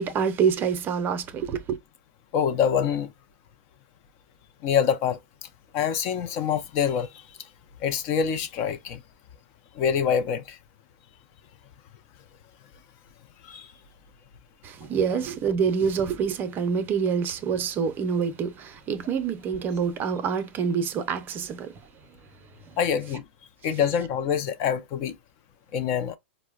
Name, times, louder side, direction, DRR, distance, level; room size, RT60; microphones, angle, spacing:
voice 1, 0.0-1.8 14.6-21.7, right 6 dB, 30° right, 0.6 m, -26 dB
voice 2, 2.3-3.1 4.6-5.2 5.7-7.1 7.8-9.0 9.8-10.6 13.4-13.7 22.8-23.2 23.6-25.2 25.7-26.2, left 7 dB, 45° left, 0.5 m, -25 dB
4.3 x 2.1 x 2.3 m
hypercardioid pair, 120°, 7 cm